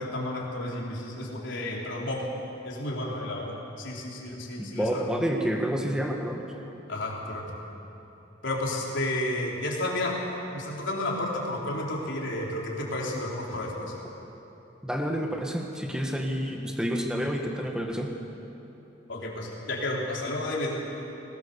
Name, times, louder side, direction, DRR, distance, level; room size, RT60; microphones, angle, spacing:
voice 1, 0.0-2.3 2.6-5.1 6.9-7.5 8.4-10.2 10.5-13.9 19.1-20.8, left 1 dB, 75° left, -2 dB, 3.7 m, -32 dB
voice 2, 4.6-6.4 14.8-18.1, equal, 5° right, 2 dB, 1.6 m, -29 dB
20.5 x 18.5 x 7.0 m, 3.0 s
head